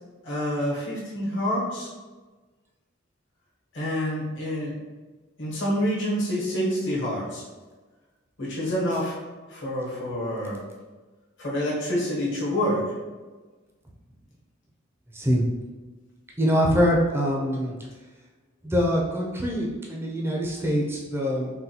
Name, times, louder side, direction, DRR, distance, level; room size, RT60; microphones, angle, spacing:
voice 1, 0.2-1.9 3.7-4.7 5.4-7.4 8.4-9.2 9.5-10.6 11.4-12.9, equal, 65° left, -7 dB, 1.1 m, -27 dB
voice 2, 15.1-15.4 16.4-17.7 18.6-21.5, equal, 10° right, -3 dB, 0.4 m, -24 dB
3.8 x 2.2 x 2.8 m, 1.3 s
head